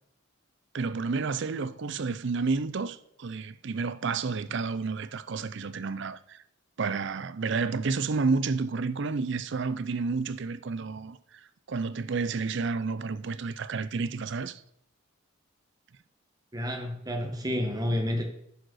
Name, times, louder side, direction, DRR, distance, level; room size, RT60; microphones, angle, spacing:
voice 1, 0.7-6.4 6.8-11.4 11.7-14.6, right 4 dB, 55° right, 0.5 m, -30 dB
voice 2, 16.5-18.2, left 1 dB, 20° right, 1.2 m, -30 dB
10.5 x 5.0 x 6.3 m
head